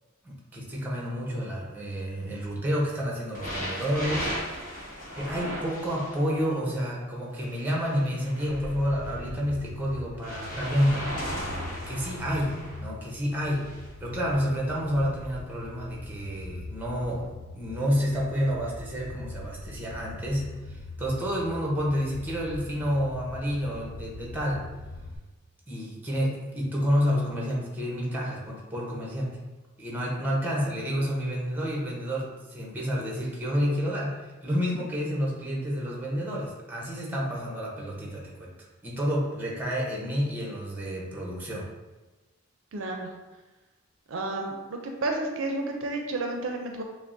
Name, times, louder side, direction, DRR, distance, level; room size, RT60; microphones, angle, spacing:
voice 1, 0.2-4.3 5.2-11.1 11.5-13.7 14.0-17.3 17.5-24.6 25.7-29.4 29.8-38.5 38.8-41.7, equal, 10° right, -3 dB, 0.7 m, -29 dB
sound 1, 3.3-6.5 7.4-9.2 10.2-12.8 13.5-13.9 14.7-14.8, equal, 40° left, 1.1 m, -36 dB
sound 2, 8.4-25.2, left 2 dB, 85° left, 0.4 m, -42 dB
voice 2, 42.7-43.1 44.1-46.8, right 2 dB, 65° right, 2 dB, 0.4 m, -31 dB
5.7 x 2.0 x 2.6 m, 1.2 s
head